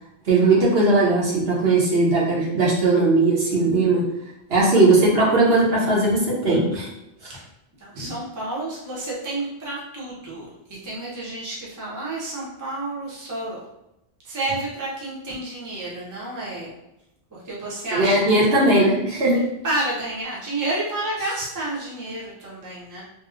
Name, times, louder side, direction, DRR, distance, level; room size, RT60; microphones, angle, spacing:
voice 1, 0.3-4.0 4.5-6.9 7.2-7.3 8.0-8.1 17.9-19.4, right 2 dB, 75° right, -5 dB, 1.0 m, -18 dB
voice 2, 7.8-13.6 14.2-16.7 17.3-18.7 19.6-23.0, right 2 dB, 20° right, -5 dB, 0.6 m, -30 dB
2.8 x 2.0 x 2.3 m, 0.86 s
omnidirectional pair, 1.1 m